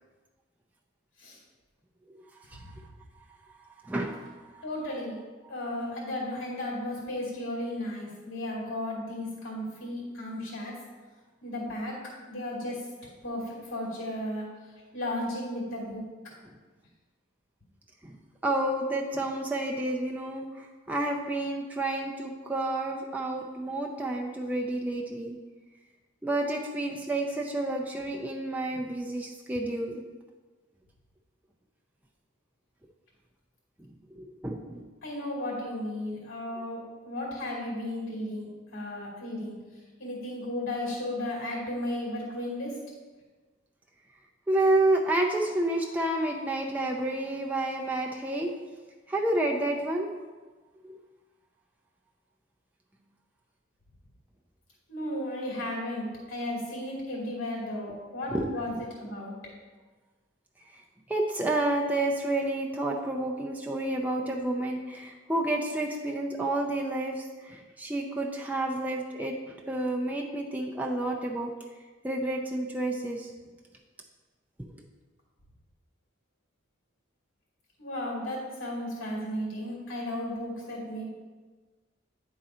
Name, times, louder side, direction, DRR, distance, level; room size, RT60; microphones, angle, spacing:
voice 1, 3.8-4.6 16.5-16.6 18.0-18.2 18.4-25.4 26.2-30.0 33.8-33.9 34.2-34.9 44.5-48.5 49.1-50.1 50.8-51.0 58.3-58.5 61.1-71.5 72.0-73.3, right 1 dB, 10° right, -1 dB, 0.4 m, -30 dB
voice 2, 4.6-5.1 5.5-10.7 11.4-11.9 12.3-12.8 13.2-14.5 14.9-16.0 35.0-39.5 40.0-42.7 54.9-58.7 59.0-59.4 77.8-81.1, left 1 dB, 85° left, -4 dB, 2.4 m, -34 dB
10.0 x 3.8 x 4.2 m, 1.3 s
head